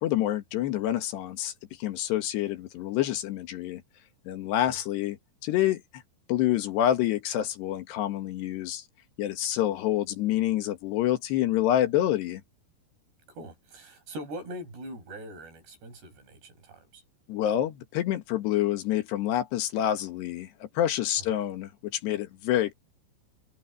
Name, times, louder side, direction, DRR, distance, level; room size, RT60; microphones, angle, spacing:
voice 1, 0.0-1.5 1.8-3.8 4.3-5.2 5.4-6.0 6.3-8.8 9.2-12.4 17.3-22.7, left 12 dB, 80° left, 3.7 m, -27 dB
voice 2, 13.3-17.0, equal, 70° right, 8.8 m, -42 dB
omnidirectional pair, 4.9 m